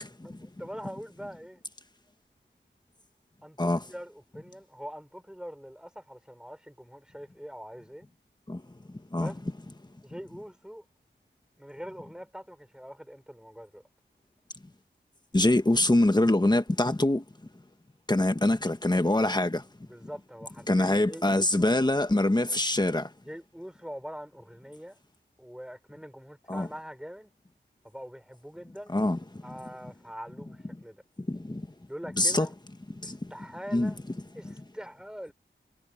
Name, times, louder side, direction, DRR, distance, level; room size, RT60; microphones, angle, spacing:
voice 1, 0.2-1.6 3.4-8.1 9.1-9.4 10.0-10.9 11.6-13.8 19.8-21.7 23.2-25.0 25.4-27.3 27.8-29.0 29.4-31.0 31.9-32.5 33.0-34.0 34.4-35.3, equal, 5° right, 5.2 m, -43 dB
voice 2, 15.3-17.2 18.1-19.6 20.7-23.1 26.5-26.7 28.9-29.2 31.3-31.6 32.2-32.5 33.0-33.2 33.7-33.9, left 1 dB, 20° left, 1.4 m, -24 dB
wide cardioid pair, 80°, 20 cm